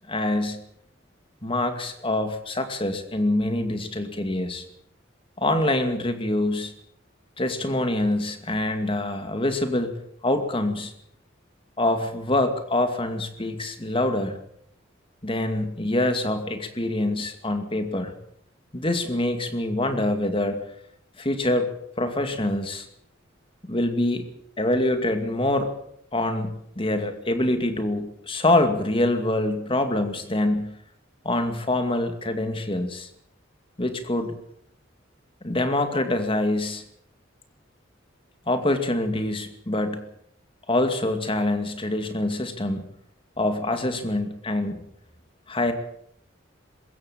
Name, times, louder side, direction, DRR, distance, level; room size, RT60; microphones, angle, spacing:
voice 1, 0.1-0.6 1.4-4.6 5.4-6.7 7.4-10.0 10.2-10.9 11.8-14.4 15.2-18.1 18.7-20.6 21.2-22.9 23.6-24.3 24.6-25.7 26.1-30.7 31.2-33.1 33.8-34.4 35.4-36.8 38.5-40.0 40.7-42.8 43.4-44.8 45.5-45.7, left 1 dB, 25° left, 7 dB, 2.3 m, -25 dB
21.5 x 16.5 x 7.6 m, 0.72 s
head